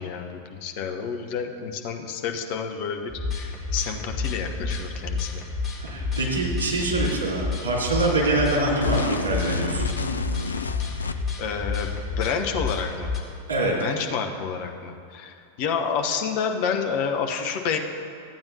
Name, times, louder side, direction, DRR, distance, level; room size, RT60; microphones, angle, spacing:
voice 1, 0.0-5.4 11.4-11.9 12.2-13.2 13.8-17.8, left 6 dB, 45° left, 4 dB, 0.8 m, -29 dB
sound 1, 3.1-13.2, left 4 dB, 20° left, 1.6 m, -30 dB
voice 2, 5.8-9.9 13.5-13.7, right 2 dB, 75° right, -5 dB, 2.5 m, -24 dB
sound 2, 8.8-11.5, left 4 dB, 75° left, 0.3 m, -30 dB
14.0 x 8.8 x 2.7 m, 2.4 s
figure-of-eight pair, 90°, 0 cm